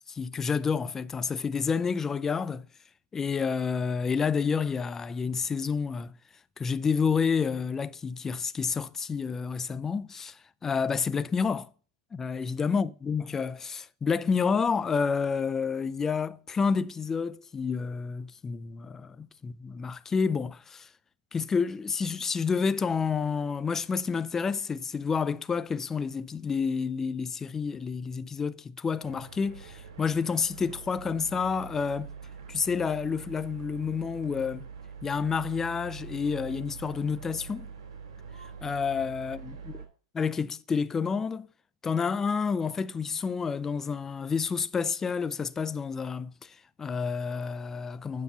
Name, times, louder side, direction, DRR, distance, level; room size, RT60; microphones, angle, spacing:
voice 1, 0.1-2.7 3.1-6.1 6.6-11.7 12.1-20.9 21.3-32.1 32.5-34.7 35.0-37.7 38.6-39.6 40.2-41.5 41.8-48.2, left 5 dB, 15° left, 0.4 m, -29 dB
sound 1, 29.0-39.9, right 6 dB, 80° right, 3.5 m, -44 dB
9.4 x 5.8 x 5.3 m
supercardioid pair, 150°, 3 cm